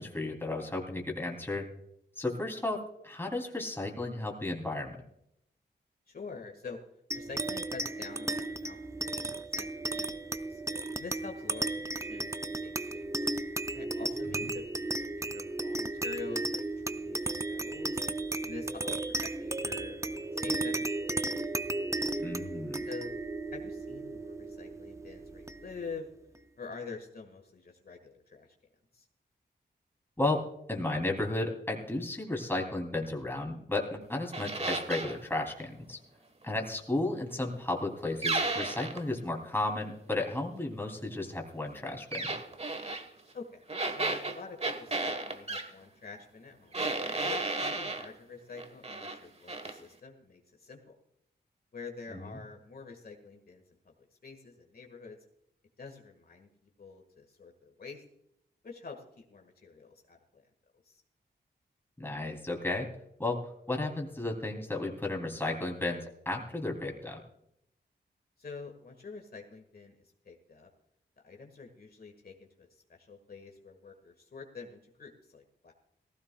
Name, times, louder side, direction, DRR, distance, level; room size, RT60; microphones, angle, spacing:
voice 1, 0.0-1.7 2.2-5.0 14.3-14.5 22.2-22.8 30.2-30.4 30.7-36.0 36.4-42.3 52.1-52.3 62.0-62.9 63.2-67.2, left 2 dB, 10° left, 1 dB, 3.0 m, -34 dB
voice 2, 6.1-6.8 7.1-10.1 10.5-10.6 11.0-13.3 13.7-18.0 18.4-21.2 22.9-23.2 23.5-26.1 26.6-28.6 28.9-29.1 43.3-43.6 43.9-46.8 47.2-50.9 51.7-53.9 54.2-55.2 55.8-58.0 58.6-60.5 60.8-61.0 68.4-70.7 71.2-75.7, left 4 dB, 55° left, 3 dB, 1.7 m, -47 dB
sound 1, 7.1-25.9, right 2 dB, 15° right, 0.5 m, -35 dB
sound 2, 34.3-35.2 38.2-39.0 42.1-43.0 43.7-45.7 46.7-48.1 48.6-49.2 49.5-49.8, right 2 dB, 35° right, 1.3 m, -33 dB
18.0 x 15.5 x 2.3 m, 0.77 s
wide cardioid pair, 95°, 18 cm